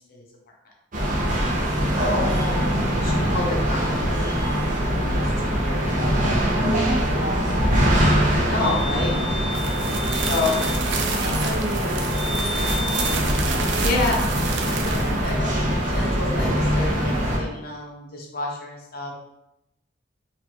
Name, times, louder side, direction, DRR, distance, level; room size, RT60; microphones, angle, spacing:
sound 1, 0.9-17.4, equal, 45° right, 0.9 m, -23 dB
voice 1, 1.9-2.3 6.9-7.9 11.2-14.0, equal, 85° right, -2 dB, 1.1 m, -35 dB
voice 2, 3.0-4.4 5.0-6.3 8.3-9.2 10.3-11.5 13.7-14.2 14.7-19.2, left 3 dB, 55° left, -2 dB, 0.9 m, -30 dB
sound 2, 9.5-15.3, right 5 dB, 65° right, 0.5 m, -31 dB
4.2 x 2.9 x 3.0 m, 0.87 s
head